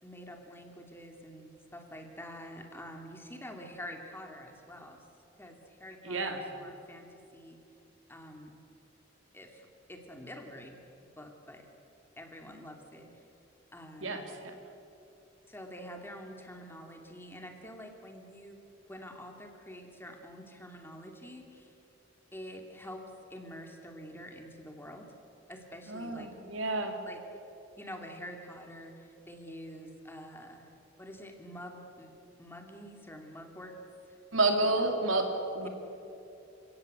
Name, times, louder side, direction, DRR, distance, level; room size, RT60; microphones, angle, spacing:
voice 1, 0.0-5.0 5.4-7.6 8.1-8.6 9.3-11.7 12.2-13.1 13.7-14.3 15.5-18.6 18.9-21.7 22.3-23.0 23.3-25.1 25.5-26.3 27.0-27.2 27.8-30.7 31.0-33.7 34.1-34.2 34.8-34.9 35.6-35.7, equal, 10° left, 3 dB, 2.6 m, -47 dB
voice 2, 6.0-6.4 14.0-14.5 25.9-26.9 34.3-35.3 35.5-35.7, right 2 dB, 90° right, 4 dB, 3.2 m, -30 dB
29.5 x 17.5 x 8.1 m, 2.8 s
head